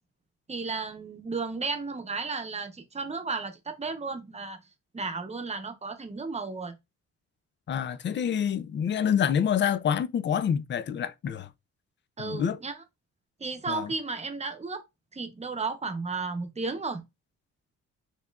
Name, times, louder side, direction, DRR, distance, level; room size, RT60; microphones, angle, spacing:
voice 1, 0.5-4.6 4.9-6.8 12.2-12.8 13.4-14.8 15.1-17.0, right 4 dB, 20° right, 0.8 m, -33 dB
voice 2, 7.7-11.5 12.2-12.6 13.7-13.9, left 8 dB, 40° left, 0.4 m, -27 dB
4.4 x 3.0 x 2.3 m
cardioid pair, 90°, 30 cm